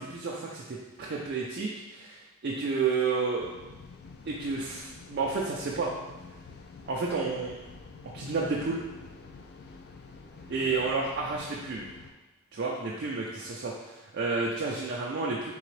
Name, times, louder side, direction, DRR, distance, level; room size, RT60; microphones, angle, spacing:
voice 1, 0.0-3.5 4.3-5.9 6.9-7.6 8.1-8.8 10.5-11.8 12.5-15.5, right 4 dB, 50° right, -3 dB, 0.4 m, -31 dB
sound 1, 3.4-12.1, left 4 dB, 50° left, 0.4 m, -48 dB
3.8 x 3.4 x 3.2 m, 1.1 s
head